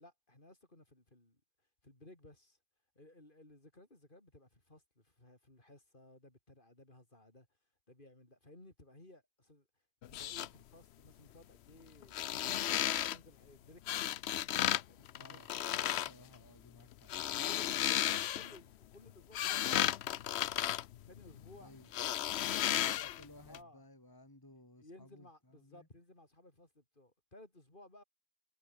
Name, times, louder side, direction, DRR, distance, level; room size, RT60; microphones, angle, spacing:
voice 1, 0.0-1.4 1.8-2.6 2.9-7.5 7.9-9.7 10.0-14.3 14.9-15.8 17.4-20.6 21.1-21.7 22.4-23.0 23.4-23.8 24.8-28.0, left 1 dB, 50° left, 5.0 m, -58 dB
sound 1, 10.0-10.5 12.0-13.2 13.9-14.8 15.1-16.1 16.9-18.6 19.1-21.5 21.9-23.2 23.5-23.6, left 12 dB, 70° left, 0.9 m, -34 dB
voice 2, 15.2-17.4 21.6-21.9 22.6-25.9, left 1 dB, 20° left, 2.8 m, -58 dB
omnidirectional pair, 1.1 m